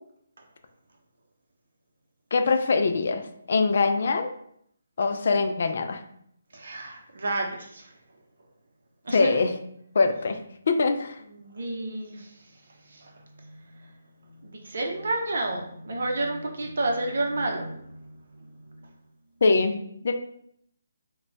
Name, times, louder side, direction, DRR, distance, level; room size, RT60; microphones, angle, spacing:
voice 1, 2.3-3.2 3.5-4.3 5.0-6.0 9.1-9.5 9.9-10.4 10.7-11.2 19.4-20.2, left 4 dB, 55° left, 7 dB, 0.3 m, -23 dB
voice 2, 6.5-7.9 9.0-9.3 11.3-12.6 12.8-13.9 14.3-18.1, right 2 dB, 65° right, 2 dB, 0.6 m, -31 dB
2.2 x 2.1 x 3.8 m, 0.69 s
figure-of-eight pair, 145°, 0 cm